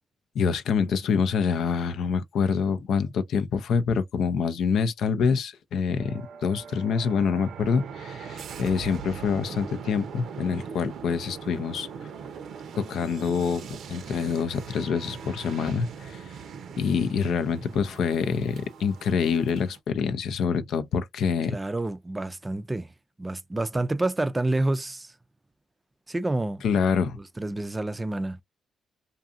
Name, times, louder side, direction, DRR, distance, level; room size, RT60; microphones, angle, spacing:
voice 1, 0.3-11.9 12.8-16.2 16.8-21.6 26.6-27.2, left 6 dB, 75° left, 0.4 m, -26 dB
sound 1, 6.0-19.8, right 7 dB, 75° right, 0.6 m, -41 dB
voice 2, 21.4-22.9 23.2-25.1 26.1-26.6 27.2-28.4, right 2 dB, 20° right, 0.4 m, -28 dB
2.6 x 2.4 x 2.5 m
supercardioid pair, 60°, 0 cm